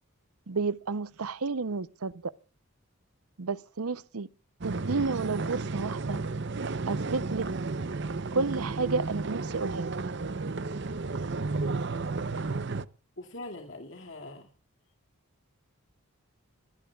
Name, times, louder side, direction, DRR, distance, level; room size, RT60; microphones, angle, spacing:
voice 1, 0.5-2.3 3.4-4.3 4.6-6.2 6.9-7.5 8.3-10.0 11.6-11.9, right 4 dB, 85° right, 0.7 m, -31 dB
sound 1, 4.6-12.9, right 3 dB, 50° right, 0.7 m, -33 dB
voice 2, 13.2-14.5, left 2 dB, 55° left, 2.4 m, -42 dB
26.0 x 15.5 x 2.4 m
head